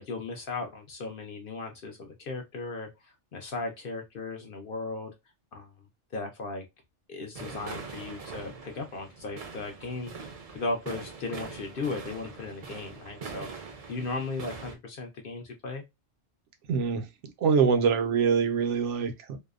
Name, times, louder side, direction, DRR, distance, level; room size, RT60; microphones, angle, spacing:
voice 1, 0.0-5.1 5.5-5.7 6.1-6.7 7.1-10.1 10.5-15.8, left 3 dB, 60° left, 0.7 m, -36 dB
sound 1, 7.3-14.8, right 5 dB, 45° right, 0.5 m, -43 dB
voice 2, 16.7-17.1 17.4-19.4, right 6 dB, 85° right, 0.9 m, -24 dB
2.7 x 2.0 x 2.3 m
omnidirectional pair, 1.2 m